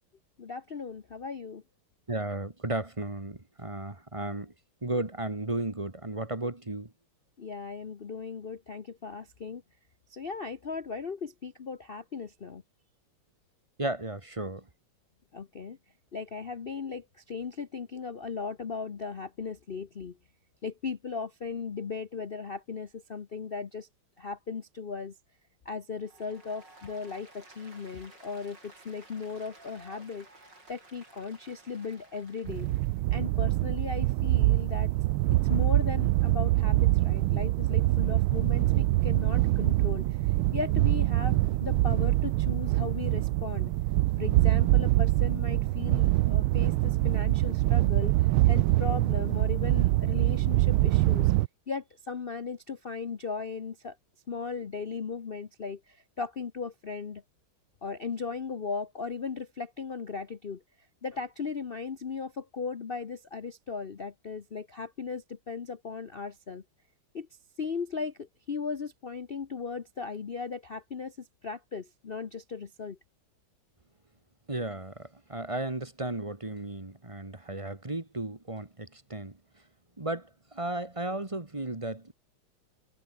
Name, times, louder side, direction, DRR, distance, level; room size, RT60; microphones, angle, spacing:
voice 1, 0.4-1.6 7.4-9.6 10.1-12.6 15.3-15.8 16.1-20.2 20.6-23.9 24.2-25.1 25.6-30.3 30.7-32.7 33.1-34.9 35.3-43.7 44.2-51.3 51.7-54.0 54.3-57.2 57.8-60.6 61.0-66.6 67.1-67.3 67.6-73.0, left 5 dB, 70° left, 0.5 m, -37 dB
voice 2, 2.1-4.5 4.8-6.9 13.8-14.6 74.5-79.4 80.0-82.1, right 2 dB, 15° right, 1.6 m, -34 dB
Applause, 26.0-33.0, right 2 dB, 50° right, 8.6 m, -55 dB
sound 1, 32.5-51.5, right 18 dB, 80° right, 1.4 m, -24 dB
omnidirectional pair, 2.4 m